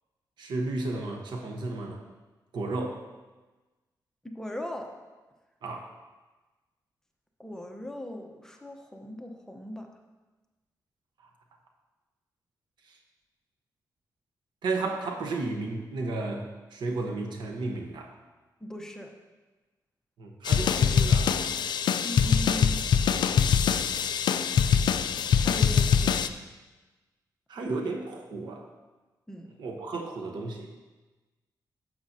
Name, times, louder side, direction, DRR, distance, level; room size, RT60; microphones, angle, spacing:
voice 1, 0.4-2.0 2.5-3.0 5.6-5.9 14.6-18.1 20.2-21.3 27.5-28.7 29.6-30.8, right 3 dB, 85° right, 2 dB, 1.1 m, -33 dB
voice 2, 4.2-5.0 7.4-9.9 18.6-19.1 22.0-22.8 25.4-26.1 29.3-29.5, equal, 5° left, 2 dB, 0.9 m, -38 dB
sound 1, 20.5-26.3, left 7 dB, 75° left, 0.4 m, -23 dB
10.0 x 7.4 x 2.8 m, 1.2 s
cardioid pair, 95°, 8 cm